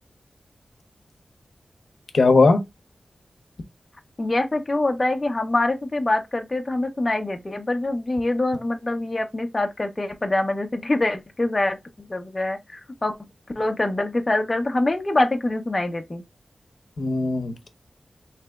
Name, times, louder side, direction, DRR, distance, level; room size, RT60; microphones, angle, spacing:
voice 1, 2.1-2.6 17.0-17.7, left 3 dB, 70° left, 0.7 m, -18 dB
voice 2, 4.2-13.1 13.6-16.2, left 2 dB, 30° left, 0.6 m, -24 dB
3.3 x 2.9 x 3.3 m
wide cardioid pair, 115°, 0 cm